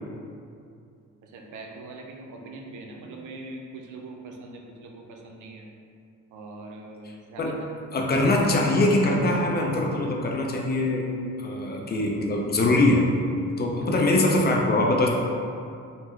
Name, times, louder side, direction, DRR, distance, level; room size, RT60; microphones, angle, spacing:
voice 1, 1.2-5.7 6.3-7.7, right 2 dB, 80° right, 1 dB, 0.5 m, -42 dB
voice 2, 7.9-11.1 11.4-13.1 13.6-15.1, left 2 dB, 35° left, -1 dB, 0.4 m, -22 dB
3.6 x 2.1 x 3.0 m, 2.4 s
cardioid pair, 90°, 30 cm